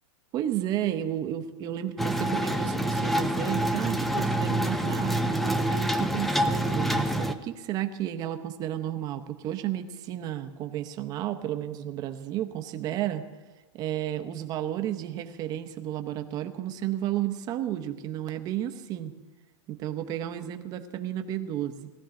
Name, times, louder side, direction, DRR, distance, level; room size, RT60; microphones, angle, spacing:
voice 1, 0.3-13.2 13.7-19.1 19.7-21.9, right 11 dB, 25° right, 7 dB, 0.8 m, -32 dB
sound 1, 2.0-7.3, right 1 dB, ahead, 0.4 m, -27 dB
19.5 x 13.5 x 3.8 m, 1.2 s
supercardioid pair, 160°, 17 cm